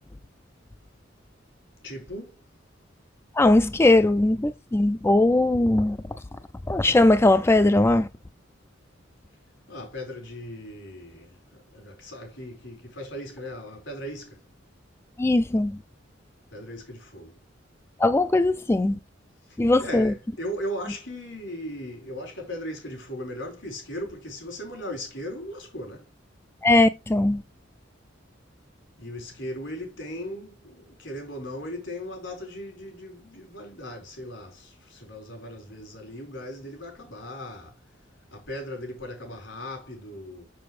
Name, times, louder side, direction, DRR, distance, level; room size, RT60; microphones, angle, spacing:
voice 1, 1.8-2.4 9.7-14.4 16.5-17.4 19.5-26.1 29.0-37.7 38.3-40.5, equal, 75° left, 4.5 m, -38 dB
voice 2, 3.3-6.2 6.7-8.1 15.2-15.8 18.0-19.0 19.6-20.1 26.6-27.4, left 2 dB, 15° left, 0.3 m, -20 dB
7.0 x 6.9 x 3.2 m
head